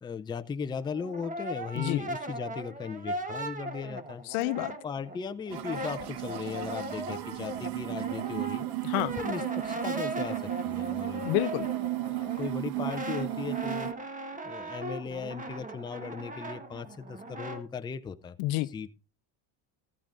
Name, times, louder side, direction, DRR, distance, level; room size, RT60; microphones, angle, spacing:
voice 1, 0.0-4.2 4.6-8.7 9.2-10.4 10.6-11.3 12.0-13.9 14.4-18.4 18.7-18.9, left 6 dB, 10° left, 0.4 m, -37 dB
Brass instrument, 0.8-5.2 5.5-17.6, right 1 dB, 15° right, 1.2 m, -38 dB
voice 2, 4.3-4.7 8.8-9.1 11.2-11.7 18.4-18.7, left 19 dB, 85° left, 0.7 m, -29 dB
sound 1, 5.5-13.9, right 20 dB, 55° right, 0.6 m, -34 dB
15.0 x 8.6 x 2.5 m
cardioid pair, 125°, 46 cm